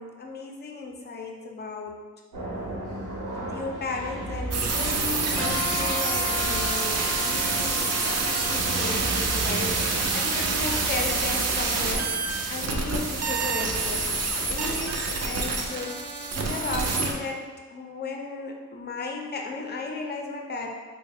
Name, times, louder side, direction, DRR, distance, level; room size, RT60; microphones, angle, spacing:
voice 1, 0.0-2.0 3.3-12.1 12.5-14.1 14.5-20.7, left 3 dB, 30° left, 2 dB, 0.4 m, -35 dB
sound 1, 2.3-17.1, right 1 dB, 75° right, 1.0 m, -37 dB
sound 2, 4.5-17.1, right 4 dB, 50° right, 0.5 m, -27 dB
Wind instrument woodwind instrument, 5.4-10.4, left 8 dB, 90° left, 0.5 m, -36 dB
3.3 x 2.1 x 3.4 m, 1.4 s
cardioid pair, 95°, 33 cm